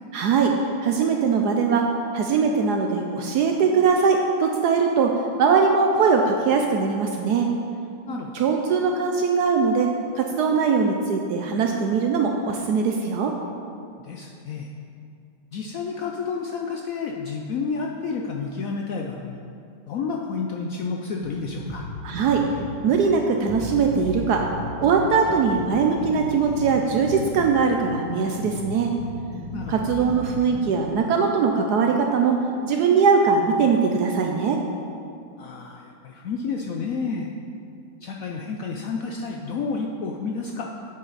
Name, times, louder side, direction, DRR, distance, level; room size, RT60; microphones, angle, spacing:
voice 1, 0.1-0.5 0.8-7.5 8.3-9.9 10.2-13.4 22.0-22.4 22.8-24.4 24.8-28.9 29.7-32.4 32.6-34.6, right 5 dB, 70° right, 2 dB, 1.1 m, -21 dB
voice 2, 14.0-14.7 15.5-19.4 19.9-21.9 29.5-29.7 35.4-37.3 38.0-40.7, left 4 dB, 70° left, 1 dB, 0.8 m, -30 dB
sound 1, 21.2-30.8, left 1 dB, 45° left, 1.8 m, -35 dB
9.4 x 7.6 x 4.0 m, 2.4 s
omnidirectional pair, 1.9 m